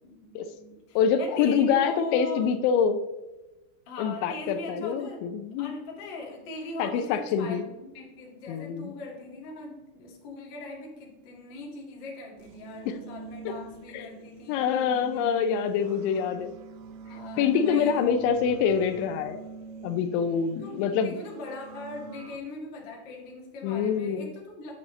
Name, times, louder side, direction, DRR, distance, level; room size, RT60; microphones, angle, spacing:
voice 1, 0.0-2.5 3.8-5.3 5.6-15.3 17.1-18.2 20.6-24.7, left 2 dB, 45° left, -2 dB, 1.5 m, -40 dB
voice 2, 1.0-3.0 4.0-5.7 6.8-7.6 8.5-8.9 12.9-13.0 13.9-14.1 14.5-16.5 17.4-19.4 19.8-21.2 23.6-24.3, left 7 dB, 85° left, 10 dB, 2.8 m, -25 dB
sound 1, 12.4-22.4, right 5 dB, 80° right, 2.2 m, -45 dB
9.2 x 8.6 x 3.2 m, 1.1 s
omnidirectional pair, 5.4 m